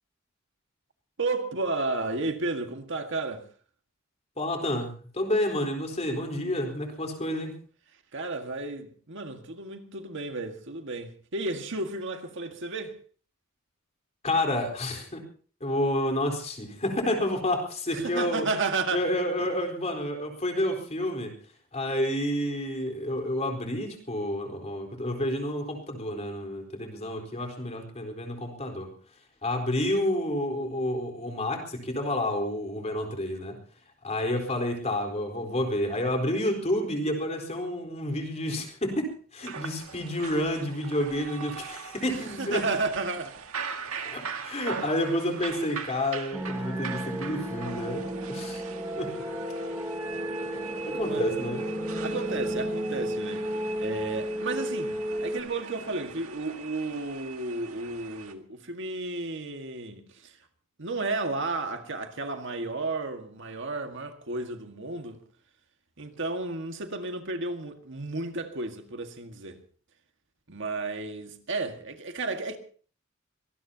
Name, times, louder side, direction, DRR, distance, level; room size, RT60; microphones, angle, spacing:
voice 1, 1.2-3.5 8.1-13.0 17.9-19.0 42.1-43.5 51.1-51.3 52.0-53.4 53.8-60.4 60.8-65.2 66.0-69.6 70.5-72.6, right 3 dB, 60° right, 1.8 m, -33 dB
voice 2, 4.4-7.5 14.2-15.2 15.6-18.4 18.9-21.3 21.7-28.9 29.4-33.6 34.0-42.6 44.1-48.6 49.0-49.1 50.9-51.6, left 1 dB, 30° left, 4.1 m, -29 dB
sound 1, 39.4-58.3, right 6 dB, 80° right, 1.8 m, -41 dB
sound 2, 46.3-55.4, right 1 dB, 15° right, 3.6 m, -33 dB
24.5 x 19.0 x 2.9 m
head